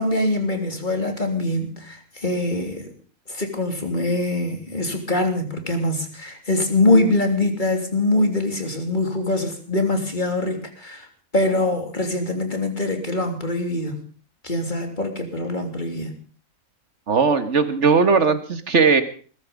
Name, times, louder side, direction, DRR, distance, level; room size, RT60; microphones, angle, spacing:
voice 1, 0.0-2.9 3.3-11.1 11.3-14.0 14.4-16.1, left 2 dB, 35° left, 5 dB, 3.4 m, -23 dB
voice 2, 17.1-19.0, right 5 dB, 55° right, 10 dB, 2.0 m, -18 dB
21.0 x 13.0 x 5.3 m, 0.42 s
omnidirectional pair, 1.5 m